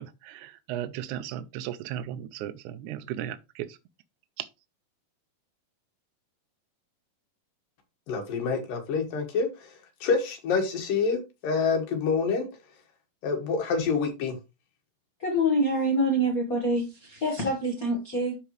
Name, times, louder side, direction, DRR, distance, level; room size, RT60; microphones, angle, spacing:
voice 1, 0.0-3.8 4.4-4.5, right 11 dB, 80° right, 1.9 m, -36 dB
voice 2, 8.1-9.7 10.0-12.5 13.2-14.4, left 5 dB, 80° left, 3.4 m, -27 dB
voice 3, 15.2-18.4, equal, 65° left, 0.8 m, -26 dB
11.5 x 4.2 x 3.1 m
omnidirectional pair, 3.8 m